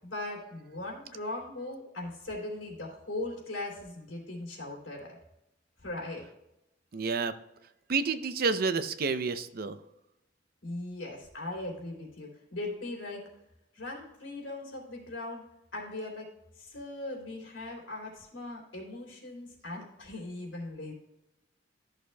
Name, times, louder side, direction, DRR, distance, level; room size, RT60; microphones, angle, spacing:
voice 1, 0.0-5.2 5.8-6.2 10.6-13.2 13.7-15.4 15.7-16.3 16.6-20.9, left 2 dB, 90° left, -2 dB, 3.0 m, -39 dB
voice 2, 6.9-7.3 7.9-9.8, right 4 dB, 55° right, 11 dB, 0.6 m, -29 dB
13.5 x 6.5 x 2.3 m, 0.89 s
head